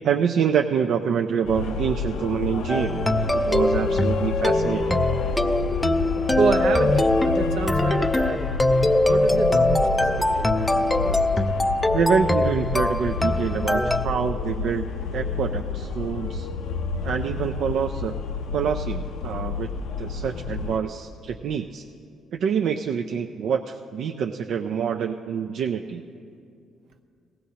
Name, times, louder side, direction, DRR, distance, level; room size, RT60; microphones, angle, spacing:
voice 1, 0.0-3.0 3.3-5.0 11.9-14.9 15.1-16.5 17.0-18.1 18.5-19.7 20.0-21.8 22.3-26.0, right 7 dB, 65° right, 3 dB, 0.4 m, -26 dB
sound 1, 1.4-20.8, left 5 dB, 85° left, 0.6 m, -29 dB
sound 2, 2.7-14.1, left 1 dB, 10° left, 0.4 m, -22 dB
voice 2, 5.6-8.5 9.0-10.5, right 5 dB, 80° right, 5 dB, 0.8 m, -29 dB
19.0 x 16.0 x 2.8 m, 2.4 s
cardioid pair, 125°, 0 cm